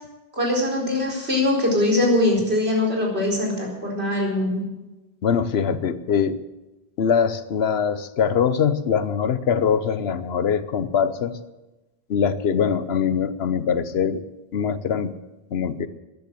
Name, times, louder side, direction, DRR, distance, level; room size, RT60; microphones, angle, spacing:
voice 1, 0.3-4.6, left 1 dB, 75° right, -2 dB, 4.6 m, -22 dB
voice 2, 5.2-6.4 7.0-11.4 12.1-14.2 14.5-15.1 15.5-15.9, left 7 dB, 75° left, 13 dB, 1.0 m, -22 dB
14.0 x 10.5 x 7.8 m, 1.0 s
omnidirectional pair, 1.1 m